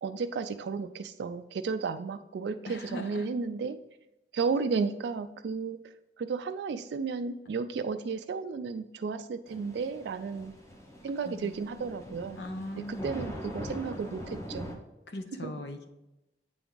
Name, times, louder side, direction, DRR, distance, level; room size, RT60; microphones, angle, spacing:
voice 1, 0.0-3.8 4.3-5.8 6.2-10.6 11.0-12.4 12.9-14.8 15.4-15.5, right 5 dB, 70° right, 8 dB, 0.3 m, -33 dB
voice 2, 2.7-3.3 11.2-11.5 12.4-13.1 15.1-15.9, left 1 dB, 70° left, 6 dB, 0.8 m, -39 dB
Thunder / Rain, 9.5-14.8, equal, 15° left, 0.8 m, -42 dB
8.3 x 3.5 x 3.8 m, 0.94 s
head